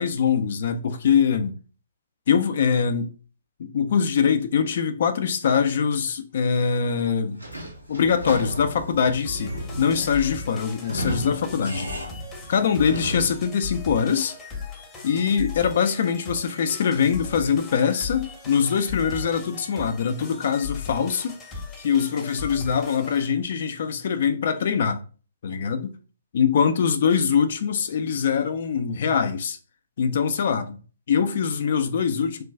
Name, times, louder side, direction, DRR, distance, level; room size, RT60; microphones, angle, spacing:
voice 1, 0.0-1.6 2.3-3.1 3.6-7.4 7.9-11.9 12.5-14.3 15.0-21.3 21.8-25.0 25.4-25.9 26.3-29.6 30.0-30.8 31.1-32.4, left 7 dB, 50° left, 0.4 m, -23 dB
Sliding door / Squeak, 7.4-13.5, equal, 90° right, 0.9 m, -34 dB
sound 1, 9.2-23.3, left 4 dB, 15° left, 0.8 m, -38 dB
3.0 x 2.3 x 3.5 m
figure-of-eight pair, 125°, 0 cm